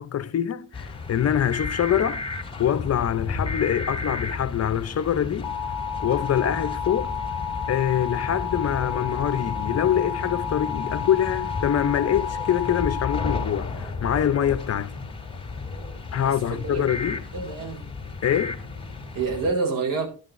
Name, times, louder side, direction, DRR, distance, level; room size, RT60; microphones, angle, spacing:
voice 1, 0.0-5.5 6.0-7.1 7.7-14.9 16.1-17.2 18.2-18.6, left 10 dB, 45° left, 0.7 m, -25 dB
sound 1, 0.7-19.5, left 5 dB, 15° left, 3.1 m, -31 dB
voice 2, 16.2-17.8 19.1-20.1, right 4 dB, 65° right, 4.2 m, -28 dB
12.5 x 11.5 x 2.6 m
cardioid pair, 105°, 35 cm